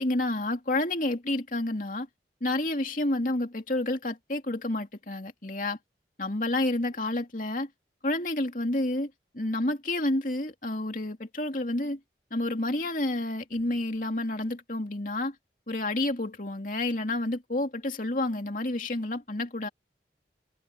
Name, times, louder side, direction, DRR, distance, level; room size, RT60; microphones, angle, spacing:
voice 1, 0.0-2.1 2.4-5.8 6.2-7.7 8.0-12.0 12.3-15.3 15.7-19.7, left 1 dB, 50° left, 2.8 m, -29 dB
head